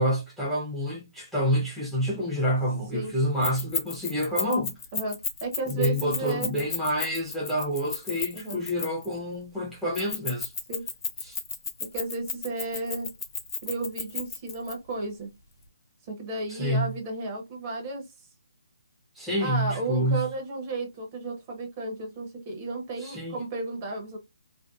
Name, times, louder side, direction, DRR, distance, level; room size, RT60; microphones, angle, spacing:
voice 1, 0.0-4.7 5.7-10.5 11.2-11.4 16.5-16.9 19.1-20.2 23.0-23.4, equal, ahead, 0.6 m, -28 dB
Keys jangling, 3.4-9.1 9.9-14.7, left 5 dB, 60° left, 0.8 m, -32 dB
voice 2, 4.9-6.5 8.3-8.6 10.7-10.9 11.8-13.1 13.6-15.3 16.1-18.0 19.4-24.2, right 3 dB, 30° right, 0.8 m, -33 dB
2.6 x 2.1 x 2.3 m
hypercardioid pair, 155°, 2 cm